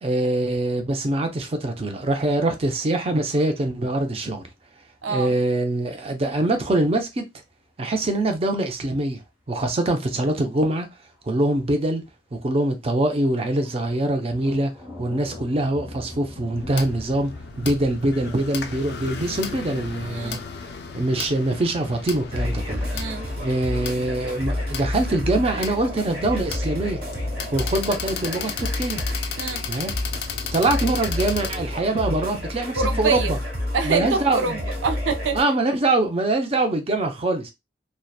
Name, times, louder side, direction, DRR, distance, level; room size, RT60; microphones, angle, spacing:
voice 1, 0.0-4.5 5.1-7.2 7.8-9.2 9.5-10.9 11.2-12.0 12.3-14.7 15.0-20.4 20.9-22.9 23.4-27.0 27.5-29.0 29.7-29.9 30.5-33.4 33.8-34.6 35.3-37.5, right 2 dB, 30° right, 0.5 m, -24 dB
sound 1, 0.6-5.6 6.1-6.5 6.7-7.0 7.5-7.6 8.3-8.4 9.0-9.1 9.5-9.6 10.1-10.7 11.1-11.3 11.8-11.9 12.3-12.6 13.1-20.4, left 1 dB, 15° right, 1.0 m, -43 dB
voice 2, 5.0-5.3 20.1-20.4 22.9-23.2 29.4-29.6 32.8-33.3 33.7-35.4, right 4 dB, 90° right, 0.5 m, -25 dB
sound 2, 16.6-31.6, left 6 dB, 60° left, 0.3 m, -35 dB
sound 3, 22.3-35.4, left 1 dB, 55° right, 1.3 m, -30 dB
2.7 x 2.1 x 2.3 m
head